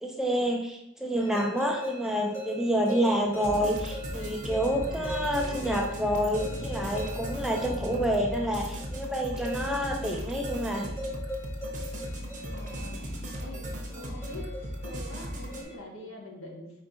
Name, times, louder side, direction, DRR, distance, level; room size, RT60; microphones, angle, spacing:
voice 1, 0.0-10.9, equal, ahead, 0 dB, 0.4 m, -28 dB
sound 1, 1.2-15.7, left 1 dB, 15° left, 1.0 m, -41 dB
sound 2, 2.7-9.0, equal, 35° left, 0.9 m, -45 dB
sound 3, 3.4-15.6, equal, 40° right, 0.9 m, -37 dB
voice 2, 12.4-13.1 13.4-14.5 14.8-16.8, left 1 dB, 70° left, -1 dB, 1.2 m, -44 dB
4.3 x 4.3 x 2.6 m, 0.79 s
head